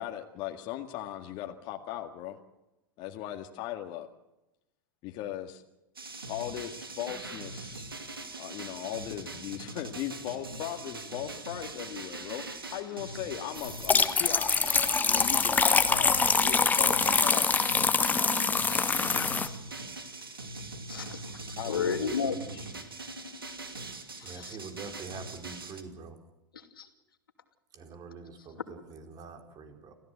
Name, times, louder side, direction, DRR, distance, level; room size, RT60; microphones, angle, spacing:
voice 1, 0.0-2.4 3.0-4.1 5.0-5.6 6.3-7.9 8.4-14.5 15.0-17.6 18.9-19.2 21.6-22.1, left 12 dB, 45° left, 4 dB, 1.9 m, -38 dB
sound 1, 6.0-25.8, right 3 dB, 90° right, 2.6 m, -42 dB
sound 2, 13.6-19.5, left 5 dB, 15° left, 1.5 m, -24 dB
voice 2, 18.9-19.6 20.9-21.2 21.7-22.7 24.2-24.6 26.5-26.9, left 6 dB, 80° left, 7 dB, 2.6 m, -34 dB
voice 3, 24.2-26.2 27.7-29.9, right 5 dB, 35° right, 6 dB, 4.6 m, -45 dB
28.0 x 16.0 x 8.0 m, 0.93 s
figure-of-eight pair, 95°, 12 cm